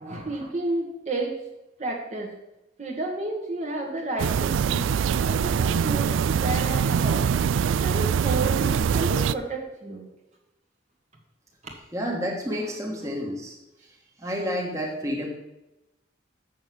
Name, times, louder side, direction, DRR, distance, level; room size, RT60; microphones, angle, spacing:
voice 1, 0.0-1.4 1.8-2.3 2.8-4.9 5.2-10.1 11.6-11.7 12.6-12.7, right 2 dB, 35° right, 0 dB, 1.4 m, -31 dB
sound 1, 4.2-9.3, right 7 dB, 80° right, 0.3 m, -23 dB
voice 2, 11.9-13.5 14.2-15.3, equal, 15° right, -1 dB, 1.5 m, -29 dB
7.2 x 6.5 x 7.6 m, 0.96 s
head